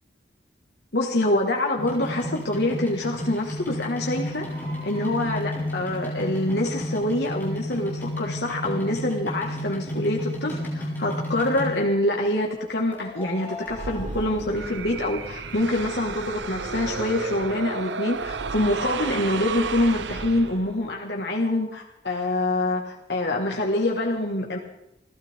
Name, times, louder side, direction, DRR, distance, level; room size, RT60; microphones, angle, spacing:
voice 1, 0.9-4.5 4.8-24.6, left 1 dB, 65° left, 0 dB, 1.8 m, -25 dB
sound 1, 1.8-12.1 12.9-15.0 15.3-16.3 16.8-16.9 17.1-17.2 17.3-17.4 17.9-18.0 18.2-18.3, left 1 dB, 10° left, 6.3 m, -33 dB
sound 2, 13.7-20.9, right 4 dB, 85° right, 0.8 m, -33 dB
29.0 x 12.5 x 3.7 m, 0.84 s
head